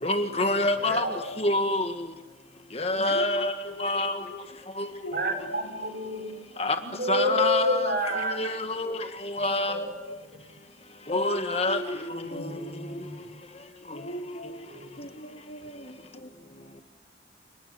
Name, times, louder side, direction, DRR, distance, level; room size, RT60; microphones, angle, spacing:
voice 1, 0.0-1.0 1.4-1.9 2.8-3.5 3.8-4.1 6.6-6.7 7.1-7.9 8.4-9.0 9.4-9.8 11.1-11.8, left 2 dB, 35° left, 1.6 m, -25 dB
voice 2, 0.8-1.3 5.1-6.4 6.7-8.4 9.4-10.0 11.6-11.7 12.2-13.4 14.7-15.0 15.6-15.7, equal, 55° right, 5.6 m, -30 dB
voice 3, 3.0-3.3 3.6-4.5 4.8-5.3 7.2-7.3 8.8-8.9 9.3-9.4 11.1-11.2 11.6-13.3 13.9-16.3, equal, 50° left, 2.1 m, -40 dB
29.5 x 20.5 x 8.2 m
head